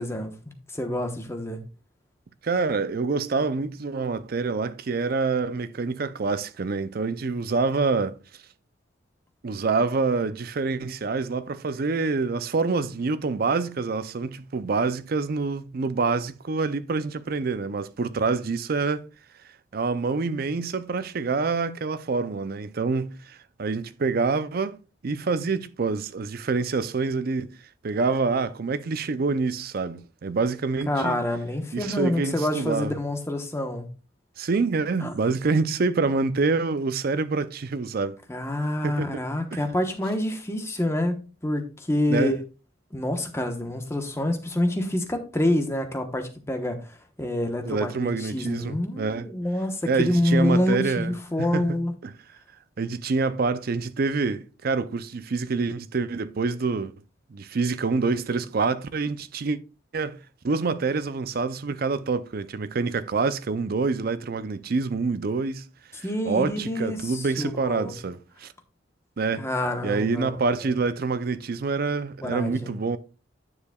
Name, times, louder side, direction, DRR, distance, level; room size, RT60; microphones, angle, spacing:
voice 1, 0.0-1.6 30.9-33.9 35.0-35.1 38.3-42.4 42.9-51.9 66.0-68.0 69.4-70.3 70.6-70.7 72.2-72.7, left 1 dB, 15° left, 1.0 m, -27 dB
voice 2, 2.4-8.2 9.4-19.1 19.7-24.8 25.0-27.5 27.8-31.2 31.7-32.9 34.4-38.2 38.8-39.2 39.5-39.6 42.1-42.4 47.6-49.3 49.9-52.1 52.8-56.9 57.3-59.6 59.9-60.2 60.4-65.7 66.0-68.5 69.2-69.5 69.8-73.0, right 4 dB, 50° right, 0.5 m, -26 dB
9.7 x 6.8 x 2.3 m
head